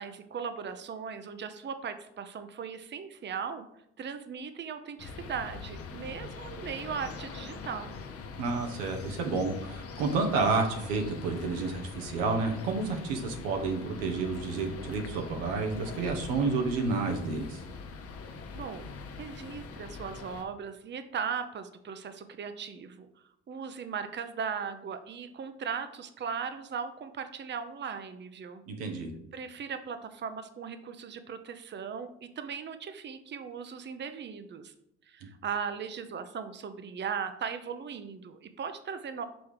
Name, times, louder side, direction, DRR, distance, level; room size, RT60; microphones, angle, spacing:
voice 1, 0.0-3.7 4.0-8.0 18.5-18.9 19.2-23.1 23.5-28.6 29.3-34.7 35.1-39.2, right 6 dB, 35° right, 9 dB, 0.7 m, -38 dB
sound 1, 5.0-20.4, left 4 dB, 50° left, 0.9 m, -43 dB
voice 2, 8.4-17.6 28.7-29.1, right 3 dB, 85° right, 4 dB, 1.0 m, -30 dB
6.2 x 3.5 x 4.8 m, 0.78 s
hypercardioid pair, 55°, 30 cm